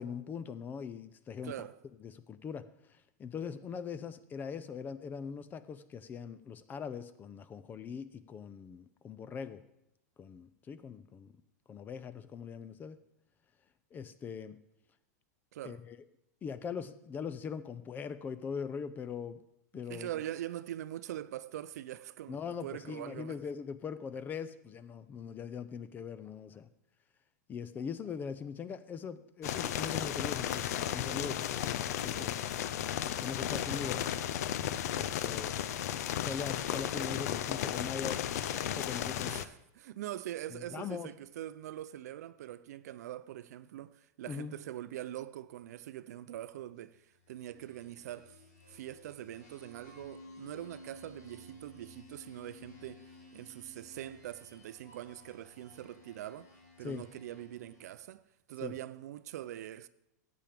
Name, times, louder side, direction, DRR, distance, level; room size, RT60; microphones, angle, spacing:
voice 1, 0.0-1.5 2.0-9.6 10.2-11.3 11.7-13.0 13.9-14.6 15.6-16.0 16.4-19.4 19.7-20.1 22.3-26.7 27.5-32.4 33.2-34.1 35.0-35.6 36.1-38.2 38.5-39.4 40.5-41.1 44.3-44.5 56.8-57.0 58.6-58.7, left 6 dB, 20° left, 0.5 m, -41 dB
voice 2, 1.4-1.8 15.5-15.8 19.9-23.4 34.8-35.1 39.3-48.4 48.7-53.0 53.3-56.5 56.8-58.2 58.5-59.9, right 13 dB, 70° right, 0.5 m, -43 dB
sound 1, 29.4-39.5, left 10 dB, 65° left, 0.6 m, -34 dB
sound 2, 47.2-58.1, left 1 dB, 90° left, 3.6 m, -55 dB
14.5 x 8.6 x 3.5 m
hypercardioid pair, 135°, 9 cm